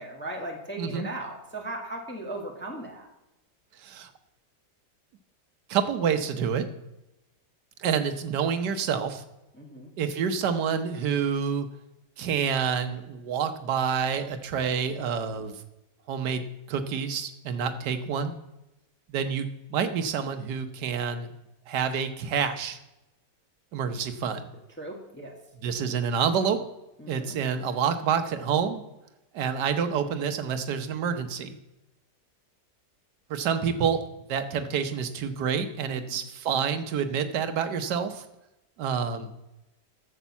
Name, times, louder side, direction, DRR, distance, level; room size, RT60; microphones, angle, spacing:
voice 1, 0.0-3.1 9.6-9.9 24.8-25.3 27.0-27.4 36.0-36.2, right 1 dB, 5° left, 0 dB, 1.4 m, -37 dB
voice 2, 0.8-1.1 3.8-4.1 5.7-6.7 7.8-9.2 10.0-11.7 12.2-15.6 16.1-18.3 19.1-21.3 21.7-22.8 23.7-24.5 25.6-26.6 27.1-28.8 29.3-31.6 33.3-34.0 34.3-38.2 38.8-39.3, right 7 dB, 75° right, 8 dB, 1.5 m, -28 dB
11.5 x 7.4 x 7.1 m, 0.95 s
omnidirectional pair, 1.8 m